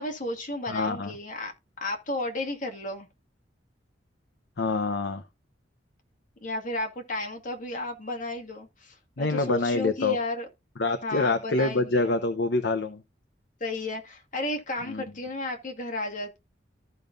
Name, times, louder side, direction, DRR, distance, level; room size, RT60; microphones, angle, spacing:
voice 1, 0.0-1.5 1.8-3.1 6.4-10.5 11.0-12.1 13.6-16.4, left 2 dB, 45° left, 2.0 m, -33 dB
voice 2, 0.7-1.1 4.6-5.2 9.2-10.2 10.8-13.0 14.9-15.0, left 3 dB, 65° left, 0.8 m, -26 dB
14.5 x 5.3 x 2.5 m
head